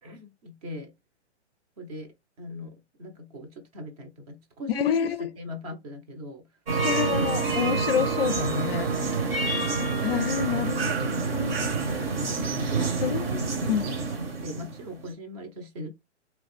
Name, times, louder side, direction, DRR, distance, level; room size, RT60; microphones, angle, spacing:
voice 1, 0.0-0.9 1.8-6.5 6.8-7.4 9.1-9.9 10.4-11.0 11.9-12.4 12.8-15.9, equal, 30° right, 0.9 m, -41 dB
voice 2, 4.7-5.3 6.8-8.9 10.0-11.6 11.9-12.0 13.0-13.9, left 9 dB, 55° left, 0.4 m, -28 dB
sound 1, 6.7-15.0, right 4 dB, 55° right, 1.3 m, -27 dB
3.0 x 2.3 x 3.3 m
hypercardioid pair, 150°, 36 cm